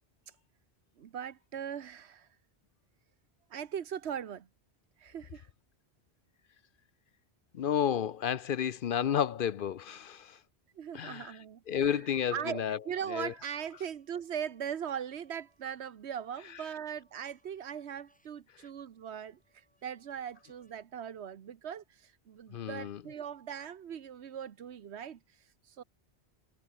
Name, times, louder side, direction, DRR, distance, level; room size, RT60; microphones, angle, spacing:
voice 1, 1.0-2.3 3.5-4.5 5.0-5.5 10.7-12.0 12.3-25.2 25.7-25.8, right 8 dB, 85° right, 1.2 m, -40 dB
voice 2, 7.5-10.4 10.9-11.4 11.7-12.8 13.1-13.3 22.5-23.0, left 9 dB, 60° left, 0.7 m, -31 dB
sound 1, 12.5-20.9, equal, 5° left, 7.4 m, -73 dB
omnidirectional pair, 1.1 m